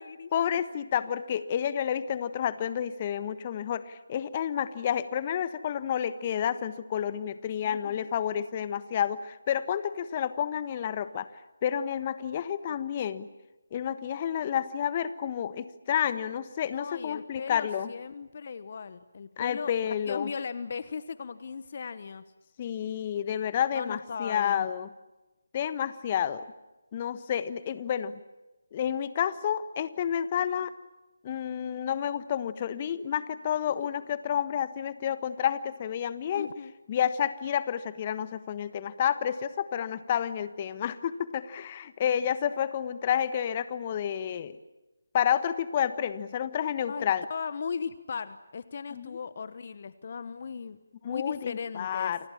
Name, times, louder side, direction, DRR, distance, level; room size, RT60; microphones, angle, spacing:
voice 1, 0.3-11.3 11.6-13.3 13.7-17.9 19.4-20.3 22.6-24.9 25.5-26.4 26.9-28.2 28.7-30.7 31.2-36.5 36.9-44.6 45.1-47.2 48.9-49.1 51.0-52.2, left 9 dB, 30° left, 14 dB, 1.3 m, -30 dB
voice 2, 7.6-8.1 16.7-22.2 23.7-24.6 36.3-36.7 46.9-50.8 51.0-52.2, left 5 dB, 45° left, 15 dB, 1.1 m, -37 dB
30.0 x 25.5 x 7.3 m, 1.1 s
figure-of-eight pair, 155°, 0 cm